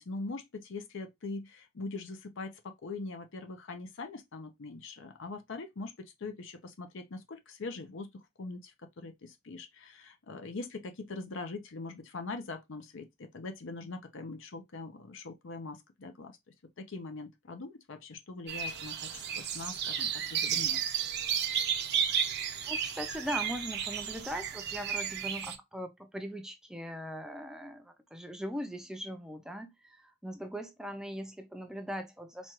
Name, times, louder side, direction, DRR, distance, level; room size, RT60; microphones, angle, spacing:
voice 1, 0.0-16.4 16.8-20.8, left 3 dB, 65° left, 0.6 m, -42 dB
sound 1, 18.5-25.6, right 8 dB, 55° right, 0.5 m, -33 dB
voice 2, 22.7-32.5, equal, 5° right, 0.4 m, -40 dB
4.3 x 2.3 x 2.9 m
head